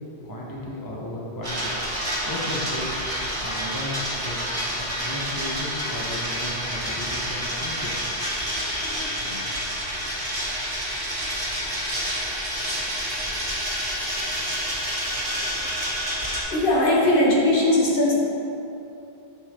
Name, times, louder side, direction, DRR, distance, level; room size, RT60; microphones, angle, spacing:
voice 1, 0.2-1.7 2.0-2.9 3.4-4.4 4.7-8.2, left 1 dB, 20° left, -4 dB, 1.0 m, -35 dB
sound 1, 1.4-16.4, equal, 50° right, 2.0 m, -28 dB
voice 2, 8.2-9.4 16.5-18.1, left 1 dB, 55° left, -5 dB, 1.5 m, -21 dB
8.0 x 7.3 x 3.7 m, 2.8 s
omnidirectional pair, 1.1 m